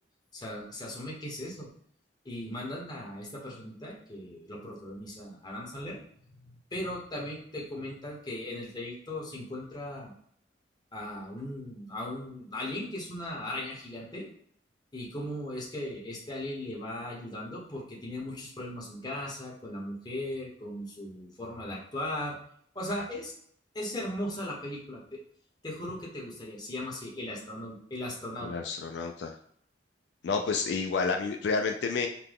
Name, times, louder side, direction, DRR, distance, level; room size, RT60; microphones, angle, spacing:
voice 1, 0.3-1.7 2.2-6.0 6.3-10.1 10.9-14.3 14.9-22.4 22.7-23.3 23.7-25.2 25.6-28.5, left 1 dB, 25° left, -3 dB, 1.2 m, -38 dB
voice 2, 28.4-29.3 30.2-32.1, left 4 dB, 70° left, 4 dB, 0.4 m, -30 dB
5.8 x 2.2 x 3.5 m, 0.63 s
head